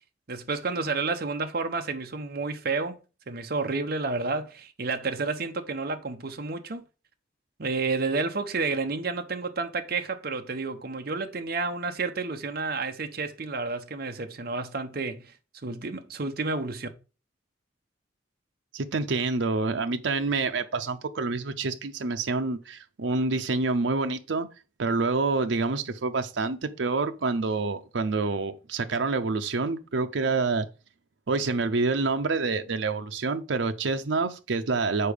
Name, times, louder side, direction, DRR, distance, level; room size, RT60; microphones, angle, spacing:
voice 1, 0.3-3.0 3.3-6.8 7.6-15.3 15.6-16.9, right 3 dB, 55° right, 0.8 m, -30 dB
voice 2, 18.7-24.5 24.8-30.7 31.3-35.1, right 3 dB, 85° right, 0.6 m, -27 dB
6.7 x 4.6 x 5.1 m
head